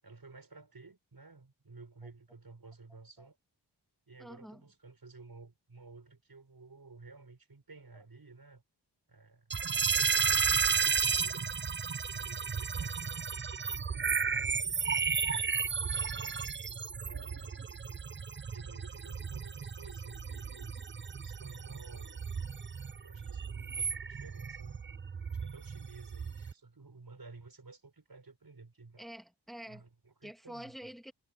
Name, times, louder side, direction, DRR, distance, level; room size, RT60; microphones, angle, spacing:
voice 1, 0.0-3.4 4.1-8.6 9.1-9.5 10.0-10.6 10.9-11.5 12.1-13.4 13.8-14.8 15.2-16.4 17.0-17.8 18.5-20.8 21.2-22.2 23.0-24.8 25.3-29.0 29.7-30.9, right 3 dB, 60° right, 7.2 m, -53 dB
voice 2, 4.2-4.6 29.0-29.8 30.2-31.1, equal, ahead, 3.1 m, -47 dB
sound 1, 9.5-26.5, right 6 dB, 30° right, 0.5 m, -33 dB
cardioid pair, 50°, 42 cm